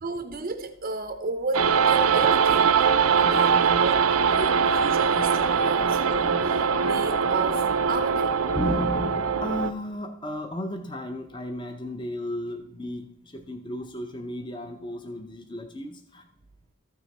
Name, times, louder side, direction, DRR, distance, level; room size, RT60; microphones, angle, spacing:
voice 1, 0.0-2.8 3.2-8.4, right 3 dB, 40° right, 0.5 m, -33 dB
sound 1, 1.5-9.7, right 6 dB, 90° right, 0.5 m, -22 dB
voice 2, 8.5-16.3, left 1 dB, 20° left, 0.6 m, -34 dB
13.5 x 6.2 x 4.2 m
head